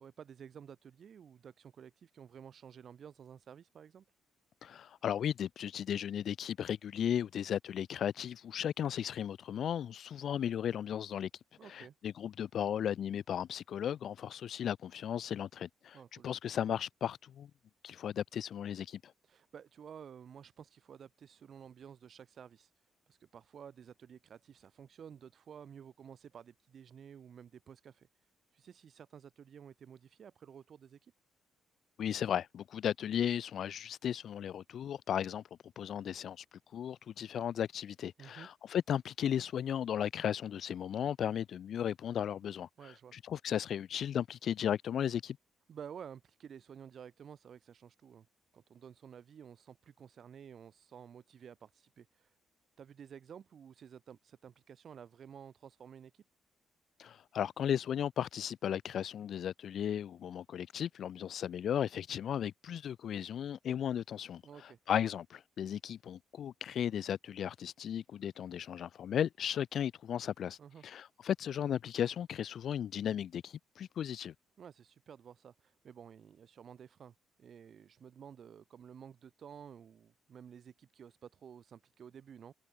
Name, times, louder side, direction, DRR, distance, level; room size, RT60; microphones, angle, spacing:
voice 1, 0.0-4.0 11.6-11.9 15.9-16.3 19.2-28.1 28.5-31.1 38.2-38.5 42.8-43.2 45.7-48.3 48.5-52.4 52.8-56.2 64.4-64.8 70.6-70.8 74.6-82.5, right 8 dB, 55° right, 6.6 m, -52 dB
voice 2, 4.6-11.3 11.7-16.0 16.2-17.5 17.8-19.1 32.0-35.4 35.8-36.4 36.7-42.7 43.1-45.4 57.0-70.6 70.8-74.3, left 9 dB, 65° left, 1.0 m, -35 dB
cardioid pair, 90°, 0 cm